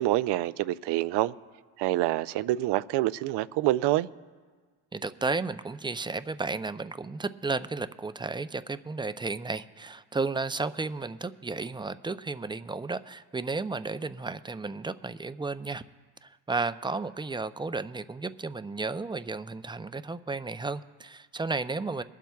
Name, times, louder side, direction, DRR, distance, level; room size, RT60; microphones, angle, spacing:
voice 1, 0.0-1.3 1.8-4.1, right 15 dB, 70° right, 16 dB, 0.5 m, -26 dB
voice 2, 4.9-15.8 16.2-22.0, right 3 dB, 10° right, 12 dB, 0.4 m, -33 dB
22.5 x 12.0 x 2.3 m, 1.5 s
supercardioid pair, 65°, 42 cm